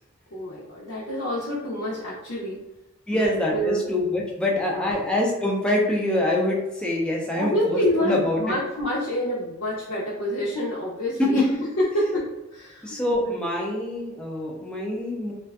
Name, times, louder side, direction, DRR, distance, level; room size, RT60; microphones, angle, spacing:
voice 1, 0.3-2.6 3.1-3.8 4.5-5.0 7.3-11.4 11.8-13.3, equal, 75° left, -8 dB, 0.6 m, -27 dB
voice 2, 3.1-8.5 11.2-11.6 12.8-15.3, left 1 dB, 5° left, -3 dB, 0.4 m, -25 dB
2.5 x 2.2 x 2.3 m, 0.95 s
head